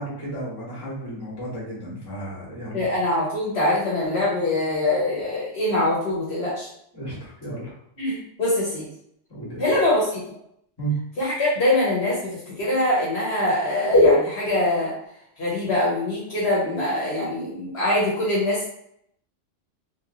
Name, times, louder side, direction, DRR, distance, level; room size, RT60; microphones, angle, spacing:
voice 1, 0.0-2.8 6.9-7.7 9.3-9.6 10.8-11.0, right 2 dB, 20° left, -7 dB, 1.4 m, -33 dB
voice 2, 2.7-6.7 8.0-8.9 9.6-10.2 11.2-14.9 15.4-18.7, left 1 dB, 60° left, -6 dB, 1.3 m, -23 dB
3.5 x 3.1 x 2.5 m, 0.73 s
omnidirectional pair, 1.3 m